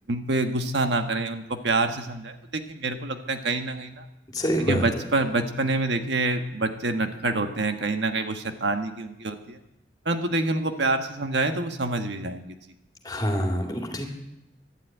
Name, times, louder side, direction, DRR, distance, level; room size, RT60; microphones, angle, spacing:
voice 1, 0.1-4.0 4.7-9.6 10.0-12.6, right 2 dB, 80° right, 6 dB, 1.4 m, -27 dB
voice 2, 4.3-4.9 13.0-14.1, equal, 20° left, 2 dB, 2.5 m, -26 dB
12.0 x 11.5 x 9.2 m, 0.88 s
head